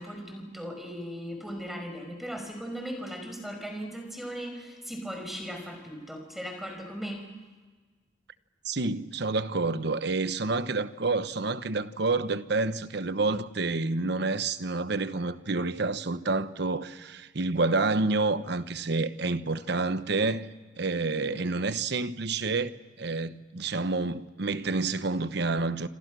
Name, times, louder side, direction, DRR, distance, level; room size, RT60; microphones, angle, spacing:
voice 1, 0.0-7.2, equal, ahead, 5.2 m, -38 dB
voice 2, 8.6-20.5 20.8-25.9, right 3 dB, 65° right, 1.0 m, -28 dB
27.5 x 26.5 x 6.2 m
head